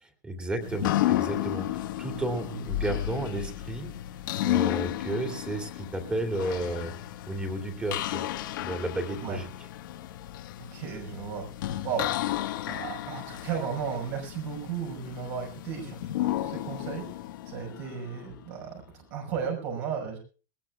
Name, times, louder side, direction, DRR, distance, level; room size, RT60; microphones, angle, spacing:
voice 1, 0.2-3.9 4.4-6.9 7.3-8.2 8.6-9.5, right 1 dB, 10° right, 4 dB, 2.6 m, -32 dB
sound 1, 0.6-18.4, left 14 dB, 80° left, 1.5 m, -33 dB
voice 2, 10.6-11.5 11.8-12.1 12.7-17.1 17.5-18.8 19.1-20.2, right 7 dB, 60° right, 0 dB, 5.5 m, -34 dB
21.0 x 20.0 x 2.4 m, 0.37 s
supercardioid pair, 155°, 11 cm